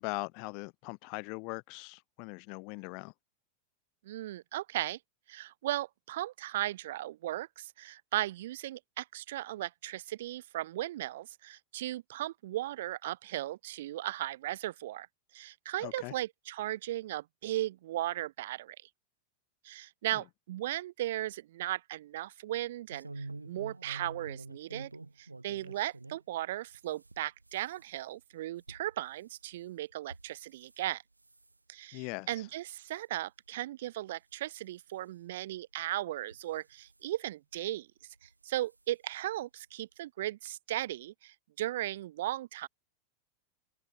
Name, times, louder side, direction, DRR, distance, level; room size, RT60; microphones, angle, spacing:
voice 1, 0.0-3.1 15.8-16.1 31.9-32.5, left 35 dB, 45° left, 0.3 m, -40 dB
voice 2, 4.0-5.0 5.3-15.1 15.3-18.8 19.6-24.9 25.2-31.0 31.7-37.9 38.2-42.7, right 14 dB, 55° right, 0.5 m, -37 dB
sound 1, 22.9-26.2 26.7-30.8 31.2-31.6 32.1-32.4 32.7-33.0 33.6-33.7 34.1-34.2 35.3-35.4 36.2-37.0 38.1-38.3 38.7-38.8 39.1-39.2, right 2 dB, 80° right, 0.8 m, -48 dB
open air
figure-of-eight pair, 90°, 0 cm